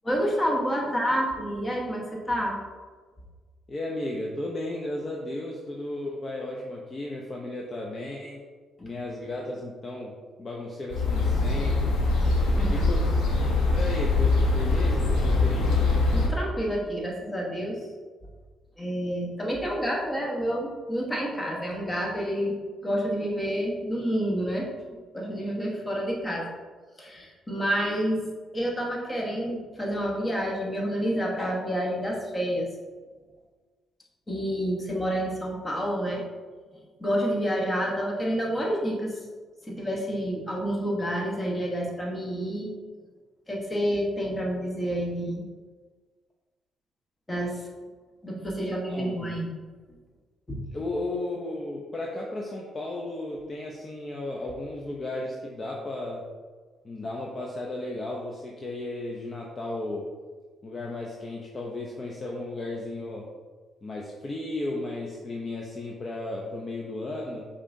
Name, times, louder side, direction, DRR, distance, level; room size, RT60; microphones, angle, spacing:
voice 1, 0.0-2.6 12.4-12.8 13.4-13.5 16.1-17.8 18.8-22.5 22.8-24.7 25.1-26.5 27.0-28.2 28.5-32.7 34.3-36.2 37.0-39.1 39.6-42.7 43.5-45.4 47.3-47.6 48.2-49.5 50.5-50.6, equal, 20° left, -2 dB, 1.1 m, -29 dB
voice 2, 3.7-8.4 8.8-12.0 12.7-13.0 13.7-15.8 48.6-49.2 50.7-56.2 56.8-60.1 60.6-63.3 63.8-67.5, left 2 dB, 35° left, -2 dB, 0.6 m, -34 dB
sound 1, 10.9-16.3, left 3 dB, 80° left, 0.9 m, -23 dB
5.3 x 3.7 x 2.6 m, 1.4 s
cardioid pair, 90°, 0 cm